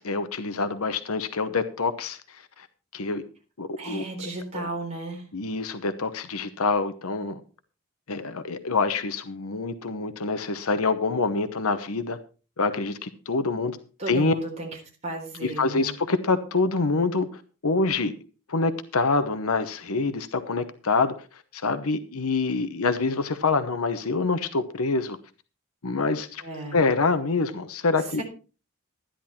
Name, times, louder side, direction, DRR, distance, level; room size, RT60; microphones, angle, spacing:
voice 1, 0.0-2.7 2.9-3.2 3.6-4.0 4.5-4.7 5.3-7.4 8.1-12.2 12.6-13.8 14.1-14.3 15.4-18.1 18.5-21.1 21.5-25.2 25.8-26.4 26.7-28.2, left 3 dB, 80° left, 11 dB, 1.0 m, -26 dB
voice 2, 3.8-5.3 14.0-14.7 15.0-15.9 26.4-26.8 28.2-28.3, right 2 dB, 30° right, -1 dB, 3.8 m, -34 dB
13.0 x 10.5 x 4.3 m, 0.35 s
head